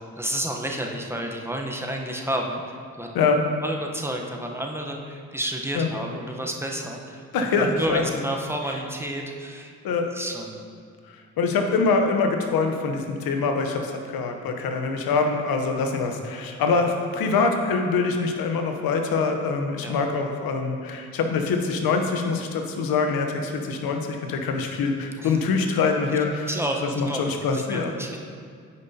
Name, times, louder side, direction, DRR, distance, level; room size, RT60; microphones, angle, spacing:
voice 1, 0.0-3.1 3.6-9.7 10.1-10.6 19.8-20.0 25.2-25.4 26.4-28.2, right 1 dB, 5° right, 1 dB, 0.9 m, -31 dB
voice 2, 7.3-8.0 9.8-10.1 11.1-26.5 27.0-28.0, left 4 dB, 75° left, 4 dB, 0.8 m, -24 dB
9.3 x 5.2 x 2.8 m, 2.2 s
supercardioid pair, 50°, 36 cm